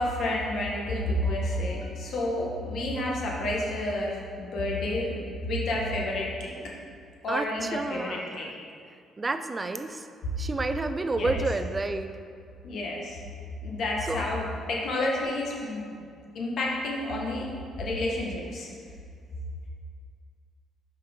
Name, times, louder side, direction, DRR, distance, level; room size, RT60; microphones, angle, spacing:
voice 1, 0.0-6.7 7.2-8.5 11.2-11.3 12.6-13.2 13.6-15.9 16.3-17.4 17.8-18.7, left 1 dB, 65° left, -3 dB, 1.6 m, -30 dB
voice 2, 7.3-8.5 9.2-10.1 10.4-12.1 14.0-14.2 14.8-14.9, right 3 dB, 25° right, 9 dB, 0.5 m, -30 dB
6.0 x 5.7 x 5.1 m, 2.3 s
cardioid pair, 95°, 0 cm